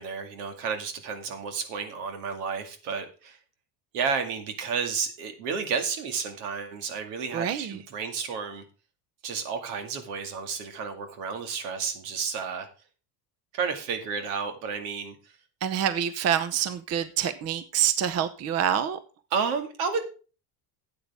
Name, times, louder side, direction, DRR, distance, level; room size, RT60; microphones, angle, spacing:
voice 1, 0.0-3.4 3.9-8.6 9.2-12.7 13.5-15.2 19.3-20.0, right 5 dB, 85° right, 2.3 m, -31 dB
voice 2, 7.3-7.8 15.6-19.0, right 9 dB, 35° right, 0.7 m, -26 dB
12.5 x 8.6 x 3.5 m
cardioid pair, 135°, 46 cm